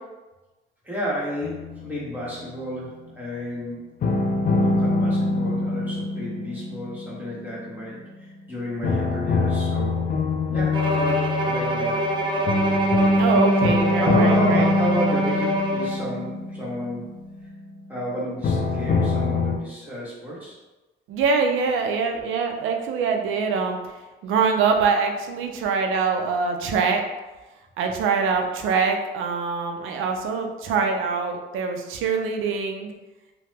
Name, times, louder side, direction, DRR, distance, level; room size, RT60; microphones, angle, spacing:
voice 1, 0.8-3.8 4.5-10.2 10.5-11.9 14.0-17.1 17.9-20.6, equal, 10° right, -8 dB, 1.2 m, -31 dB
sound 1, 1.4-2.6 4.0-8.0 8.8-17.6 18.4-19.6, left 2 dB, 45° left, 0.4 m, -24 dB
Bowed string instrument, 10.7-16.1, right 1 dB, 25° right, 0.5 m, -25 dB
voice 2, 13.2-14.7 21.1-23.8 24.2-27.0 27.8-32.9, right 5 dB, 85° right, 4 dB, 0.5 m, -24 dB
2.8 x 2.1 x 3.3 m, 1.1 s
cardioid pair, 90°, 20 cm